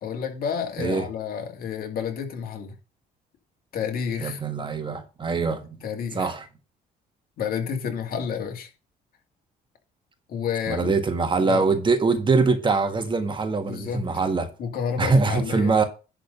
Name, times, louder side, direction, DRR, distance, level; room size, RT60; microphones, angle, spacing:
voice 1, 0.0-2.7 3.7-4.4 5.8-6.3 7.4-8.7 10.3-11.0 11.5-11.6 13.7-14.1 14.6-15.7, left 7 dB, 60° left, 2.5 m, -30 dB
voice 2, 4.2-5.7 6.1-6.5 10.7-14.5 15.0-15.8, right 4 dB, 30° right, 1.5 m, -23 dB
11.0 x 4.0 x 5.6 m
cardioid pair, 110°, 17 cm